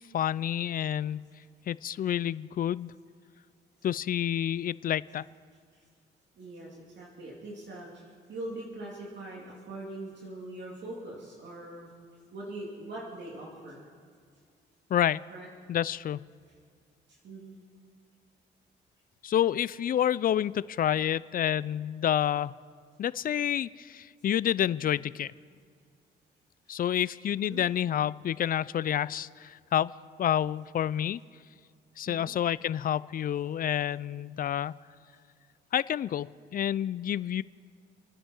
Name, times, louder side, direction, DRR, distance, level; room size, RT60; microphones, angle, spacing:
voice 1, 0.1-1.3 1.7-2.9 3.8-5.2 14.9-15.2 15.7-16.2 19.2-22.5 23.0-25.3 26.7-29.9 30.2-31.2 32.0-34.7 35.7-37.4, left 10 dB, 45° left, 20 dB, 0.4 m, -29 dB
voice 2, 6.4-11.9 12.3-13.8 15.3-15.5 17.1-17.6 27.4-27.6 32.1-32.3, right 2 dB, 65° right, -4 dB, 2.9 m, -42 dB
28.5 x 10.0 x 4.5 m, 2.1 s
cardioid pair, 90°, 20 cm